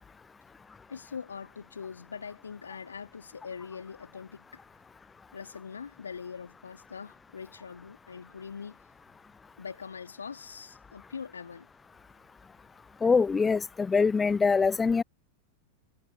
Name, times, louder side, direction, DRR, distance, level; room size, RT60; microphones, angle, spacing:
voice 1, 0.9-4.6 5.3-8.8 9.6-11.7, left 6 dB, 70° left, 3.4 m, -42 dB
voice 2, 13.0-15.0, left 5 dB, 15° left, 0.3 m, -24 dB
figure-of-eight pair, 90°, 0 cm